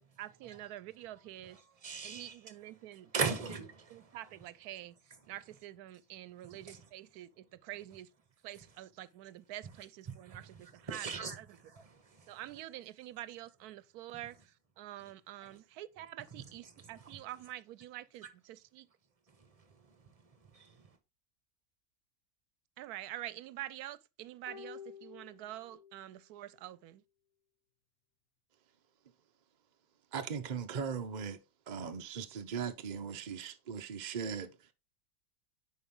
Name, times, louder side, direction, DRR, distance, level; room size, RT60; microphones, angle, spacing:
voice 1, 0.0-1.6 2.0-3.1 3.9-8.1 8.4-11.1 11.3-11.6 12.3-18.9 22.8-27.0, right 14 dB, 85° right, 1.1 m, -47 dB
voice 2, 1.8-2.3 3.1-4.2 6.7-6.8 10.3-10.4 10.9-12.3 15.4-15.5 16.3-16.4 19.4-20.9, right 5 dB, 25° right, 1.2 m, -39 dB
sound 1, 24.5-26.1 26.4-26.5, left 7 dB, 70° left, 1.8 m, -51 dB
voice 3, 30.1-31.4 31.7-34.6, right 6 dB, 40° right, 0.7 m, -39 dB
10.0 x 4.6 x 3.7 m
omnidirectional pair, 1.6 m